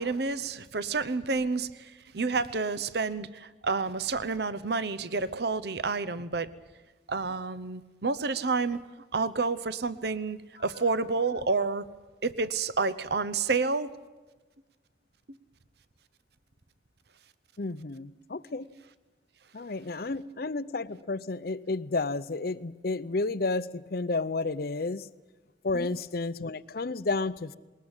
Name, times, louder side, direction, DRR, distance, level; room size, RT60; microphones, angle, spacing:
voice 1, 0.0-6.5 7.1-8.8 9.1-11.8 12.2-13.9 25.7-25.9, right 4 dB, 60° right, 15 dB, 0.8 m, -29 dB
voice 2, 17.6-18.7 19.5-25.1 25.6-27.6, left 3 dB, 50° left, 16 dB, 0.7 m, -31 dB
21.0 x 20.0 x 8.9 m, 1.2 s
head